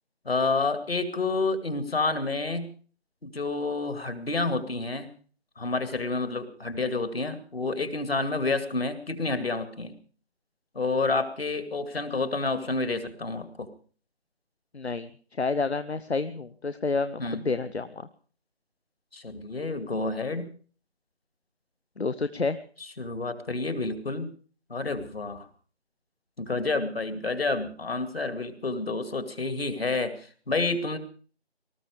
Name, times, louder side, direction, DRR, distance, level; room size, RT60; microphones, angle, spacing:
voice 1, 0.3-2.7 3.2-5.1 5.6-9.9 10.7-13.7 17.2-17.4 19.1-20.5 23.0-24.3 24.7-25.5 26.4-31.0, left 3 dB, 65° left, 10 dB, 2.3 m, -29 dB
voice 2, 14.7-15.1 15.4-18.1 22.0-22.6, left 4 dB, 80° left, 13 dB, 0.9 m, -29 dB
19.5 x 13.5 x 5.0 m, 0.41 s
figure-of-eight pair, 160°, 33 cm